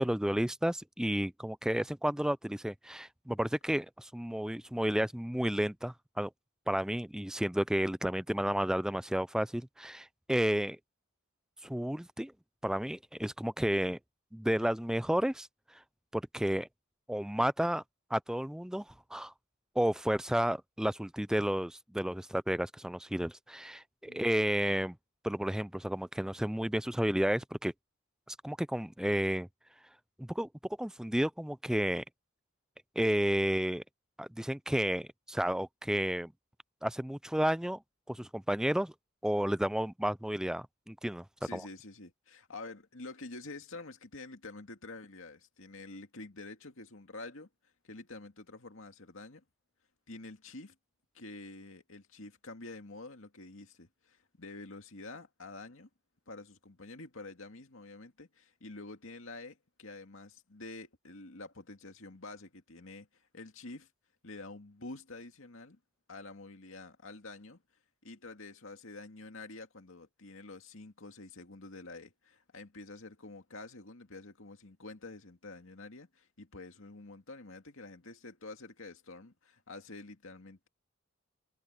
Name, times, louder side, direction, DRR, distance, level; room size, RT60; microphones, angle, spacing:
voice 1, 0.0-6.3 6.7-10.8 11.6-12.3 12.6-14.0 14.3-15.5 16.1-16.7 17.1-17.8 18.1-19.3 19.8-25.0 25.2-27.7 28.3-29.5 30.2-30.5 30.8-32.0 33.0-33.8 34.2-36.3 36.8-37.8 38.1-38.9 39.2-41.2 41.5-41.6, equal, 5° right, 0.3 m, -31 dB
voice 2, 41.4-47.5 47.8-49.4 50.1-50.7 51.1-55.9 56.3-63.9 64.2-65.8 66.1-67.6 68.0-80.7, left 2 dB, 65° left, 2.3 m, -48 dB
head